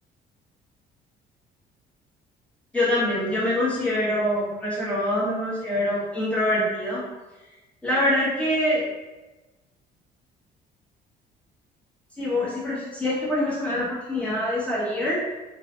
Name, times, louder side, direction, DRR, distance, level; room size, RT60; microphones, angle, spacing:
voice 1, 2.7-7.1 7.8-8.8 12.2-15.2, left 1 dB, 5° left, -8 dB, 1.4 m, -25 dB
3.2 x 3.0 x 2.6 m, 1.1 s
cardioid pair, 110°, 17 cm